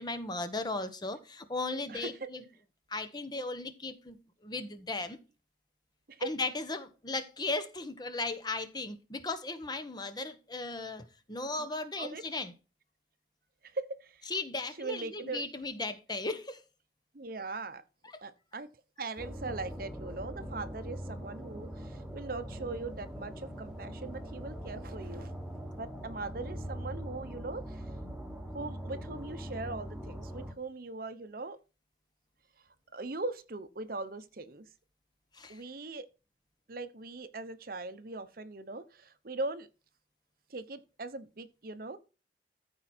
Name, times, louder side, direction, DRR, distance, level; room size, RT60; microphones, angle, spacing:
voice 1, 0.0-2.5 2.9-4.2 4.4-5.2 6.2-12.5 14.3-16.6 18.1-18.2 35.3-35.6, left 3 dB, 25° left, 1.1 m, -36 dB
voice 2, 1.9-2.3 6.1-6.3 12.0-12.3 13.6-14.3 14.8-15.5 17.1-17.8 18.2-18.7 19.0-25.3 25.7-27.8 28.5-31.6 32.9-34.7 35.5-36.1 36.7-39.7 40.5-42.0, right 3 dB, 55° right, 0.9 m, -40 dB
sound 1, 19.2-30.5, equal, 5° right, 1.2 m, -42 dB
14.0 x 4.7 x 4.3 m
head